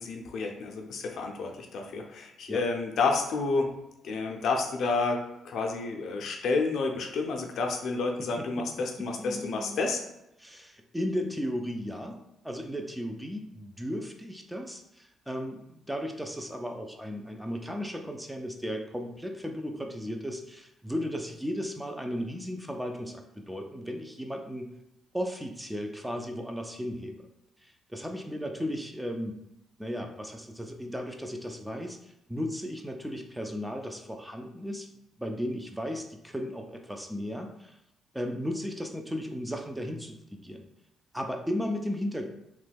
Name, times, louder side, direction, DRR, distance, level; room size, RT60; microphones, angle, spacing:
voice 1, 0.0-3.7 4.0-10.0, left 3 dB, 65° left, 3 dB, 0.5 m, -30 dB
voice 2, 8.2-9.9 10.4-24.7 25.1-27.3 27.6-29.4 29.8-34.9 35.2-37.8 38.1-40.6 41.1-42.2, equal, 5° right, 3 dB, 0.4 m, -35 dB
3.0 x 2.2 x 3.3 m, 0.85 s
cardioid pair, 90°, 0 cm